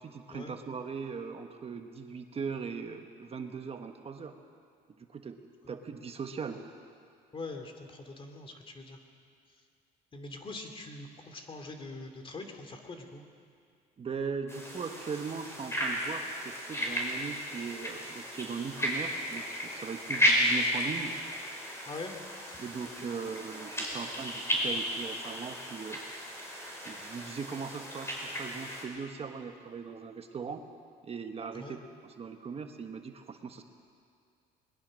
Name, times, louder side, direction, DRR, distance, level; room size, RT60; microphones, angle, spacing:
voice 1, 0.0-4.3 5.0-5.4 5.7-6.6 14.0-21.1 22.6-26.0 26.8-30.6 31.0-33.6, right 5 dB, 35° right, 5 dB, 1.3 m, -39 dB
voice 2, 7.3-9.0 10.1-13.2 21.9-22.1 22.4-22.6 31.5-31.8, left 3 dB, 30° left, 5 dB, 2.6 m, -43 dB
sound 1, 14.5-28.8, equal, 15° left, 5.4 m, -34 dB
21.0 x 20.5 x 6.4 m, 2.3 s
cardioid pair, 110°, 17 cm